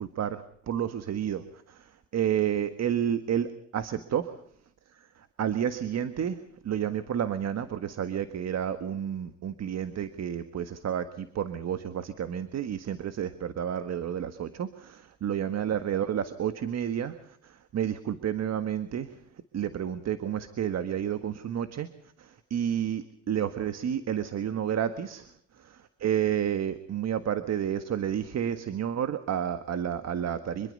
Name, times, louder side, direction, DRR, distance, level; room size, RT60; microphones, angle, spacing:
voice 1, 0.0-4.4 4.9-19.2 19.5-21.9 22.2-25.3 26.0-30.7, right 9 dB, 60° right, 10 dB, 1.6 m, -30 dB
25.5 x 22.5 x 5.4 m, 0.65 s
cardioid pair, 90°, 30 cm